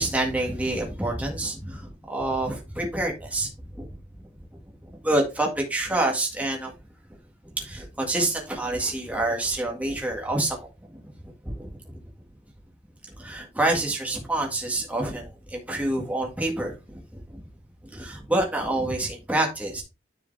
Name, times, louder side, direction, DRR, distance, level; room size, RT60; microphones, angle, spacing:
voice 1, 0.0-3.5 3.7-3.9 5.0-6.7 7.6-10.6 10.9-11.0 11.4-11.7 13.2-17.0 17.3-17.4 17.9-19.8, right 2 dB, 10° right, 1.8 m, -27 dB
10.5 x 5.1 x 3.3 m
head